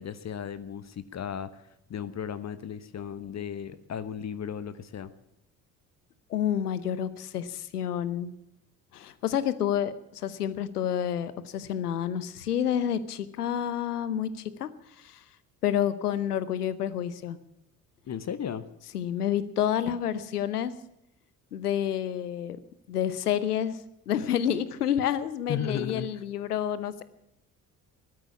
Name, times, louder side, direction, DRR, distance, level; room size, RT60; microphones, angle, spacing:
voice 1, 0.0-1.6 1.9-5.1 18.1-18.7 25.5-26.1, left 8 dB, 35° left, 14 dB, 1.1 m, -35 dB
voice 2, 6.3-8.3 8.9-14.7 15.0-15.2 15.6-17.4 18.9-20.7 21.5-22.6 22.9-23.8 24.1-27.0, left 9 dB, 80° left, 16 dB, 0.9 m, -29 dB
15.5 x 13.0 x 6.9 m, 0.81 s
figure-of-eight pair, 50°, 45 cm